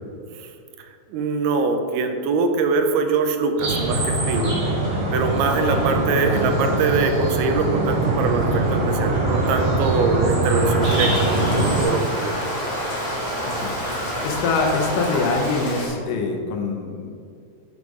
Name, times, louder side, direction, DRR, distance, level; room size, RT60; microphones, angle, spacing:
voice 1, 0.8-4.5 5.1-12.4, right 4 dB, 85° right, 6 dB, 2.2 m, -23 dB
sound 1, 3.6-11.8, right 2 dB, 60° right, 2.6 m, -22 dB
voice 2, 5.5-6.6 13.4-17.1, left 4 dB, 80° left, 2 dB, 2.4 m, -25 dB
sound 2, 10.4-15.4, equal, 20° right, 0.8 m, -31 dB
Rain, 10.8-15.9, equal, 45° left, 2.2 m, -30 dB
6.5 x 5.2 x 4.8 m, 2.3 s
omnidirectional pair, 3.7 m